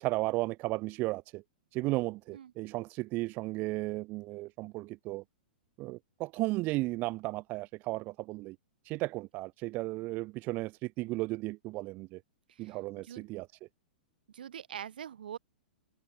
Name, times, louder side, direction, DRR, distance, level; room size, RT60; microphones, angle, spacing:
voice 1, 0.0-1.4 1.7-5.2 5.8-8.6 8.8-12.2 12.6-13.5, right 21 dB, 35° right, 0.4 m, -34 dB
voice 2, 12.5-13.3 14.3-15.4, right 9 dB, 65° right, 4.1 m, -44 dB
figure-of-eight pair, 105°, 5 cm